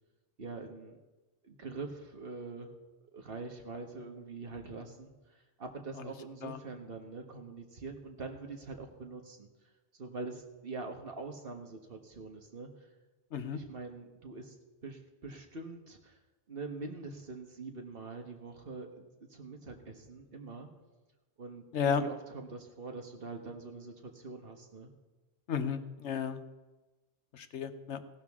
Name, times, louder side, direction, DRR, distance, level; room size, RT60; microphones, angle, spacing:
voice 1, 0.4-1.0 1.4-2.7 3.1-5.1 5.6-9.5 9.9-12.9 13.5-14.6 14.8-16.2 16.5-20.7 21.4-24.9, right 3 dB, 55° right, 3 dB, 1.6 m, -44 dB
voice 2, 21.7-22.0 25.5-26.4 27.3-28.0, left 7 dB, 75° left, 10 dB, 1.1 m, -33 dB
17.0 x 12.0 x 3.6 m, 1.2 s
omnidirectional pair, 1.2 m